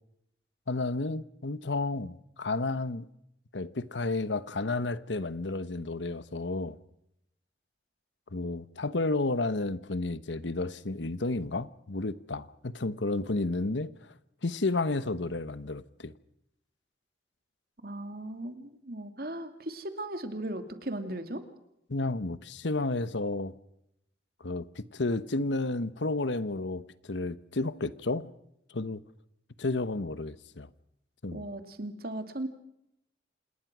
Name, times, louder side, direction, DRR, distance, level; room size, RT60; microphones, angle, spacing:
voice 1, 0.7-3.1 3.5-6.8 8.3-14.1 14.4-16.1 21.9-23.5 24.4-28.3 28.7-29.0 29.6-30.7 31.2-31.5, left 2 dB, 85° left, 1.1 m, -32 dB
voice 2, 17.8-21.4 31.3-32.5, right 1 dB, 55° right, 2.7 m, -37 dB
27.5 x 20.0 x 6.2 m
head